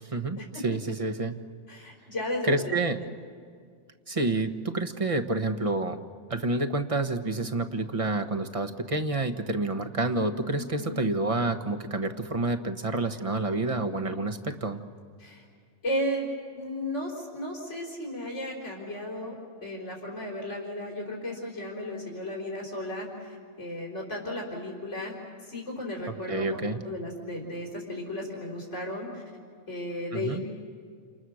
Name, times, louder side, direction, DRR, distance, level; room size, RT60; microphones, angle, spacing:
voice 1, 0.0-1.4 2.4-3.0 4.1-6.0 6.3-14.8 26.3-26.8 30.1-30.4, right 2 dB, 30° right, 8 dB, 1.3 m, -28 dB
voice 2, 1.7-2.7 3.0-3.1 10.5-11.0 15.2-15.4 15.8-19.3 19.6-25.1 25.4-29.2 29.7-30.4, left 1 dB, 90° left, -2 dB, 4.5 m, -34 dB
29.5 x 28.0 x 6.4 m, 2.1 s
omnidirectional pair, 1.2 m